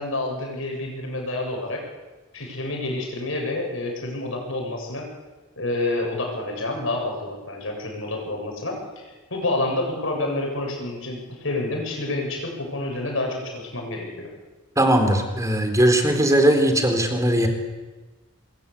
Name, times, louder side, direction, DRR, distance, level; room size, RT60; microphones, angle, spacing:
voice 1, 0.0-1.8 2.3-5.1 5.6-14.3, left 2 dB, 70° left, 1 dB, 7.7 m, -28 dB
voice 2, 14.8-17.5, right 1 dB, 15° right, 5 dB, 4.0 m, -19 dB
26.0 x 22.5 x 8.7 m, 1.2 s
head